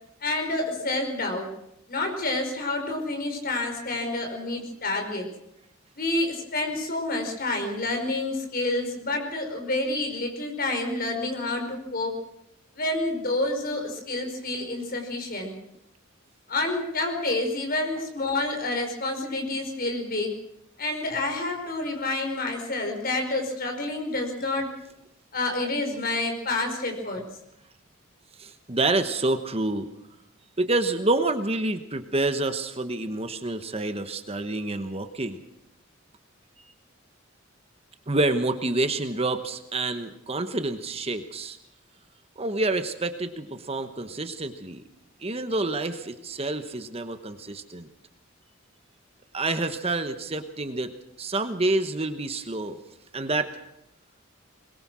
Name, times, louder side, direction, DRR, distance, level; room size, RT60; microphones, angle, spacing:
voice 1, 0.2-1.5 1.9-5.3 6.0-12.2 12.7-15.5 16.5-20.4 20.8-24.7 25.3-27.2, left 2 dB, 45° left, 4 dB, 5.1 m, -28 dB
voice 2, 28.4-29.9 30.6-35.4 38.1-41.6 42.4-44.8 45.2-47.9 49.3-52.8 53.1-53.5, right 2 dB, 30° right, 9 dB, 1.2 m, -28 dB
22.0 x 22.0 x 6.3 m, 0.81 s
head